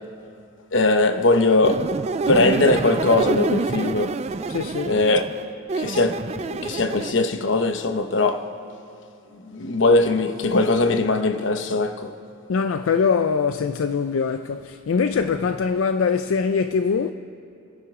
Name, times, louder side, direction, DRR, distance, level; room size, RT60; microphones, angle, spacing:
voice 1, 0.7-1.9 2.3-4.2 4.8-5.3 5.7-8.5 9.3-12.1, left 2 dB, 65° left, 0.9 m, -20 dB
sound 1, 1.6-7.1, right 3 dB, 30° right, 0.3 m, -27 dB
voice 2, 4.5-4.9 12.5-17.1, left 5 dB, 80° left, 0.4 m, -22 dB
30.0 x 10.5 x 3.7 m
head